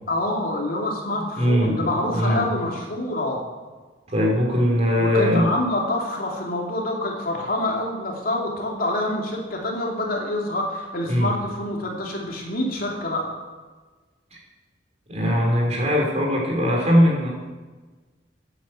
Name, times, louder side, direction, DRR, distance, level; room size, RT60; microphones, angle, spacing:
voice 1, 0.1-3.4 5.0-13.3, left 1 dB, 55° left, -1 dB, 3.1 m, -26 dB
voice 2, 1.4-1.8 2.1-2.4 4.1-5.5 11.1-11.3 14.3-14.4 15.1-17.3, equal, 40° right, -1 dB, 4.2 m, -20 dB
10.5 x 10.5 x 7.8 m, 1.3 s
head